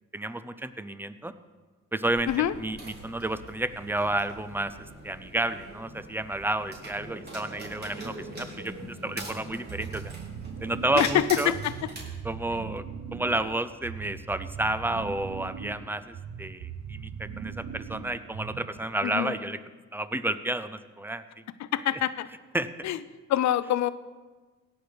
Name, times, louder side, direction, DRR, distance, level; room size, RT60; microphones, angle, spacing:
voice 1, 0.1-1.3 1.9-4.7 5.0-10.1 10.6-11.5 12.2-12.8 13.1-19.6 19.9-21.4 22.5-22.9, right 1 dB, 5° right, 13 dB, 0.6 m, -31 dB
sound 1, 2.0-12.0, right 1 dB, 35° right, 4.4 m, -42 dB
sound 2, 9.7-18.9, right 7 dB, 60° right, 0.9 m, -40 dB
voice 2, 10.9-11.7 19.0-19.3 21.6-22.3 22.8-23.0 23.3-23.9, left 11 dB, 65° left, 15 dB, 0.6 m, -25 dB
17.0 x 6.3 x 5.1 m, 1.3 s
cardioid pair, 90°, 30 cm